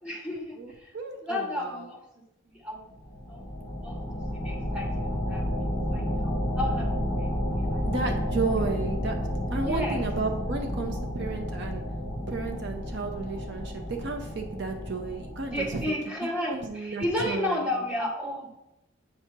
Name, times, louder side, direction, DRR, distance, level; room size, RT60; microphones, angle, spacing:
voice 1, 0.0-0.9 1.2-2.0 2.5-2.9 3.3-3.4 3.8-4.0 4.4-7.3 7.6-7.8 9.1-9.2 9.6-10.0 15.5-18.6, left 1 dB, 5° right, -2 dB, 1.2 m, -33 dB
voice 2, 0.6-1.8 7.8-9.1 9.5-11.8 12.3-15.8 16.5-17.7, right 3 dB, 55° right, 4 dB, 0.6 m, -33 dB
sound 1, 3.0-15.8, equal, 25° left, 1.1 m, -31 dB
7.8 x 2.8 x 5.8 m, 0.89 s
head